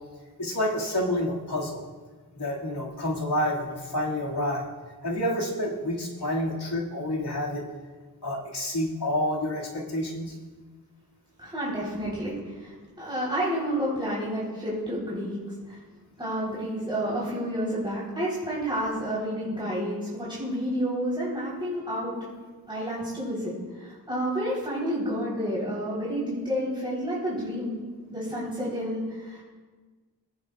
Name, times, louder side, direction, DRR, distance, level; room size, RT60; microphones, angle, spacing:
voice 1, 0.4-1.8 2.3-4.7 5.0-7.6 8.2-10.4, left 1 dB, 85° left, -3 dB, 2.2 m, -28 dB
voice 2, 11.4-15.4 15.7-15.8 16.2-22.2 22.7-27.7 28.1-29.4, equal, 10° right, -7 dB, 3.7 m, -30 dB
21.5 x 10.5 x 2.4 m, 1.4 s
wide cardioid pair, 60°, 39 cm